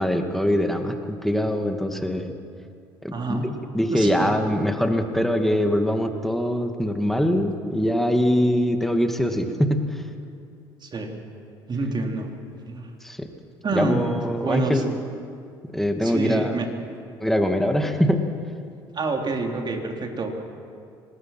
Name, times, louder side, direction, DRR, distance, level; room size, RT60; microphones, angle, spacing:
voice 1, 0.0-2.3 3.0-10.0 13.0-13.3 13.7-15.0 15.7-16.6 17.2-18.2, equal, ahead, 5 dB, 2.3 m, -23 dB
voice 2, 3.1-3.5 3.9-4.3 10.8-11.1 11.7-12.3 12.7-12.9 13.6-14.1 14.4-14.8 16.0-16.7 18.9-20.3, right 3 dB, 40° right, 2 dB, 3.9 m, -27 dB
25.0 x 20.0 x 6.1 m, 2.4 s
hypercardioid pair, 60°, 12 cm